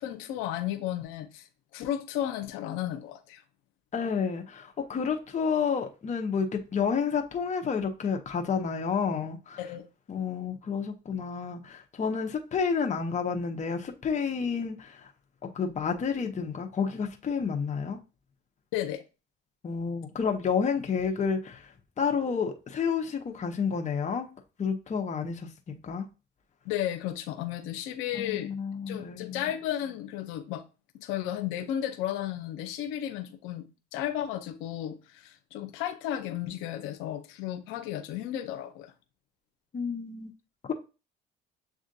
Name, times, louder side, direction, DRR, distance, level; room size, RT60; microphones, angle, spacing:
voice 1, 0.0-1.5 1.7-3.4 9.6-9.9 18.7-19.0 26.6-28.5 28.9-30.6 30.9-38.9, left 11 dB, 85° left, 0.6 m, -34 dB
voice 2, 3.9-9.6 10.1-15.1 15.5-18.0 19.6-24.3 24.6-26.0 28.1-29.4 39.7-40.3, left 6 dB, 35° left, 0.8 m, -30 dB
7.2 x 2.4 x 2.6 m
supercardioid pair, 75°, 20 cm